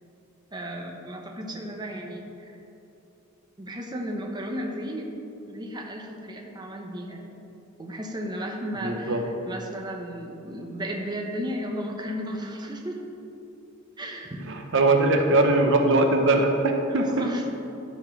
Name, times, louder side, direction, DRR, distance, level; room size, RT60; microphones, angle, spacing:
voice 1, 0.5-2.6 3.6-5.1 5.5-7.3 7.8-13.0 14.0-14.5 16.9-17.5, equal, 20° right, 1 dB, 0.8 m, -34 dB
voice 2, 8.8-9.2 14.7-17.3, right 2 dB, 60° right, 4 dB, 0.8 m, -21 dB
12.0 x 4.4 x 5.9 m, 2.9 s
head